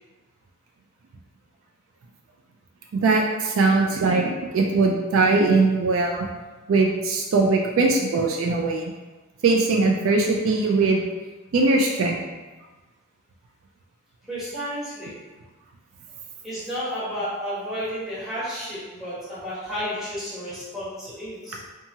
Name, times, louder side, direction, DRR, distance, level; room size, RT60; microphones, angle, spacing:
voice 1, 2.9-6.3 6.7-8.8 9.4-11.0 11.5-12.2, right 3 dB, 65° right, 1 dB, 0.3 m, -20 dB
voice 2, 14.3-15.2 16.4-21.6, equal, ahead, -10 dB, 0.9 m, -32 dB
2.8 x 2.3 x 2.7 m, 1.2 s
head